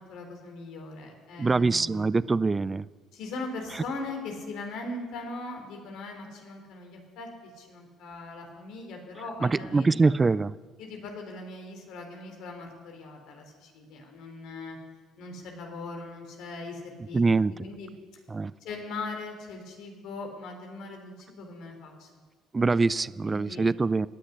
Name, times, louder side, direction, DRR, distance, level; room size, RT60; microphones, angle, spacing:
voice 1, 0.1-2.3 3.1-7.3 7.6-10.3 10.8-14.8 15.2-17.2 17.5-17.9 18.6-22.1 22.6-22.7 23.2-23.7, left 3 dB, 70° left, 3 dB, 3.4 m, -40 dB
voice 2, 1.4-2.9 3.7-3.8 9.4-10.5 17.1-17.5 18.3-18.5 22.5-24.1, right 3 dB, 25° right, 19 dB, 0.4 m, -24 dB
17.5 x 6.4 x 9.8 m, 1.4 s
supercardioid pair, 70°, 0 cm